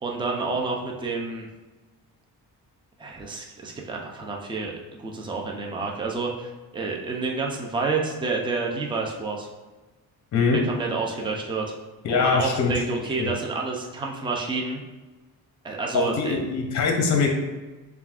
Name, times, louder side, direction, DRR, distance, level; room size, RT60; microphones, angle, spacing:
voice 1, 0.0-1.5 3.0-4.7 5.0-9.5 10.6-11.7 12.1-14.8 15.6-16.3, right 4 dB, 15° right, -1 dB, 0.4 m, -29 dB
voice 2, 12.0-13.3 15.9-17.3, left 5 dB, 50° left, 2 dB, 0.7 m, -23 dB
7.0 x 2.4 x 2.4 m, 1.2 s
cardioid pair, 140°, 38 cm